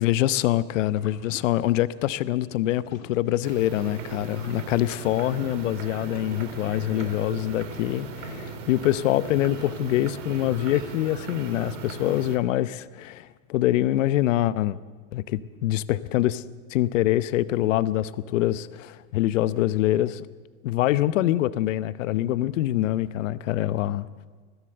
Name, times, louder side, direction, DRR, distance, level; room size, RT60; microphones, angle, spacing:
voice 1, 0.0-14.8 15.1-16.4 16.7-20.3 20.6-24.1, left 14 dB, 70° left, 0.9 m, -25 dB
sound 1, 0.7-3.8 4.1-10.0, left 7 dB, 85° left, 2.5 m, -51 dB
sound 2, 3.4-12.4, right 4 dB, 65° right, 3.2 m, -37 dB
21.5 x 16.0 x 7.8 m
supercardioid pair, 150°, 40 cm